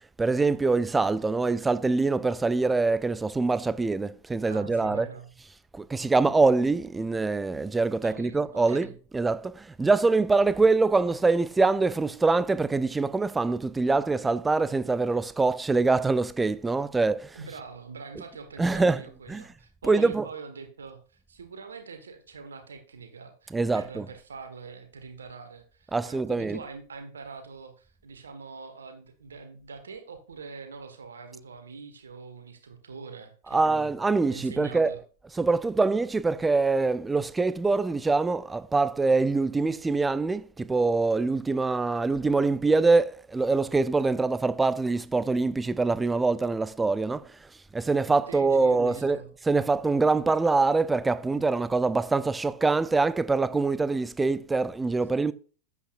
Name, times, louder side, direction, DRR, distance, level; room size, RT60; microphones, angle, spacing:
voice 1, 0.2-5.1 5.7-8.9 9.1-17.5 18.6-19.0 19.3-19.5 19.8-20.3 23.5-24.0 25.9-26.6 33.5-35.0 35.3-47.3 47.7-55.3, right 3 dB, 10° right, 0.4 m, -24 dB
voice 2, 4.5-5.3 8.0-8.9 17.3-33.9 34.3-35.0 48.3-49.3, right 5 dB, 70° right, 1.5 m, -44 dB
11.5 x 8.3 x 2.5 m
figure-of-eight pair, 90°, 0 cm